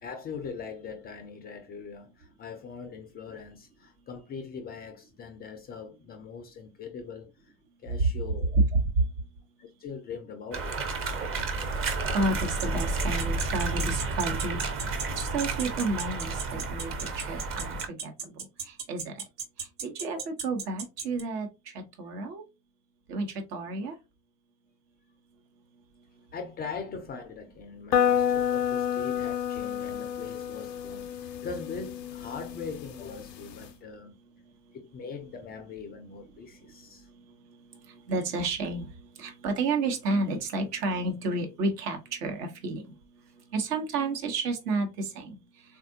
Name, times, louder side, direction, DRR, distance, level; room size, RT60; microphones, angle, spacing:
voice 1, 0.0-7.5 7.8-8.5 9.6-10.9 20.0-20.3 26.3-34.1 34.7-37.1, left 5 dB, 20° left, 0.3 m, -41 dB
sound 1, 10.5-17.9, right 3 dB, 25° right, 0.6 m, -31 dB
voice 2, 12.1-14.6 15.2-17.8 18.0-18.1 18.9-19.2 19.8-21.5 22.0-22.4 23.1-23.3 23.5-23.9 38.1-38.9 39.2-42.8 43.5-45.4, right 3 dB, 70° right, 1.1 m, -30 dB
sound 2, 12.4-21.2, right 6 dB, 45° right, 1.0 m, -34 dB
sound 3, 27.9-33.7, left 9 dB, 85° left, 0.6 m, -30 dB
3.6 x 2.5 x 2.6 m
figure-of-eight pair, 75°, 49 cm